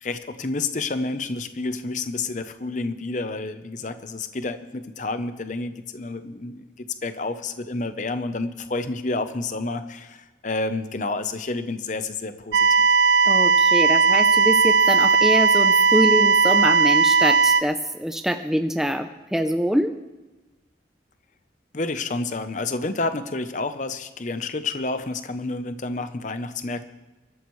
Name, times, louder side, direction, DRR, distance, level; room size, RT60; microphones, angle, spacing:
voice 1, 0.0-12.8 21.7-26.8, left 3 dB, 45° left, 10 dB, 0.7 m, -29 dB
sound 1, 12.5-17.6, right 4 dB, 75° right, 0.4 m, -17 dB
voice 2, 13.3-19.9, equal, ahead, 6 dB, 0.5 m, -24 dB
23.5 x 12.5 x 3.2 m, 1.1 s
head